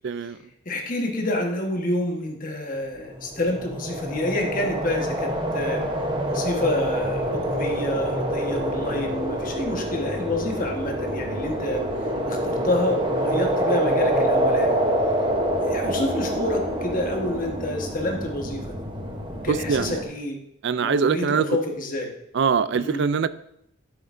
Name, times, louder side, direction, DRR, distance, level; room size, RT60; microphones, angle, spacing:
voice 1, 0.0-0.4 19.5-20.0 20.6-21.5 22.3-23.3, right 6 dB, 55° right, 15 dB, 0.4 m, -23 dB
voice 2, 0.6-5.8 6.2-11.8 12.3-14.8 15.6-18.8 19.4-20.4 20.8-22.1 22.7-23.0, left 1 dB, 40° left, 2 dB, 1.3 m, -28 dB
sound 1, 3.1-20.0, equal, 25° right, 0.9 m, -26 dB
10.5 x 7.9 x 2.6 m, 0.74 s
head